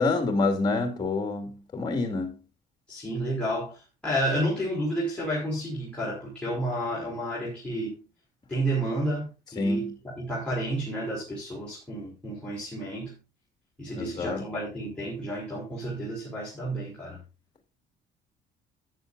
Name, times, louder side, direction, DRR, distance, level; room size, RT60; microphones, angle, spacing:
voice 1, 0.0-2.4 9.6-9.9 13.9-14.4, left 3 dB, 25° left, 2.6 m, -27 dB
voice 2, 2.9-8.0 8.5-13.1 13.8-17.2, right 1 dB, 5° left, 5.0 m, -31 dB
14.0 x 9.4 x 2.6 m
cardioid pair, 110°, 17 cm